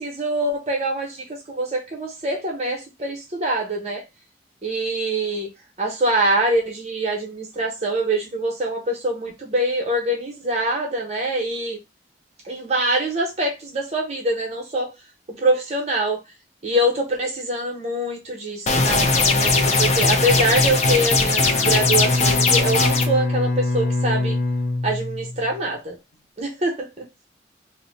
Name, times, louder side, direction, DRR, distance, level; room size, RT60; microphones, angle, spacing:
voice 1, 0.0-4.0 4.6-5.5 5.8-11.8 12.4-14.9 15.4-16.2 16.6-24.4 24.8-26.0 26.4-27.0, right 1 dB, 40° right, 0.9 m, -24 dB
sound 1, 18.7-23.0, left 3 dB, 40° left, 0.5 m, -19 dB
Bowed string instrument, 21.4-25.6, left 2 dB, 85° left, 0.6 m, -24 dB
2.8 x 2.2 x 3.9 m
head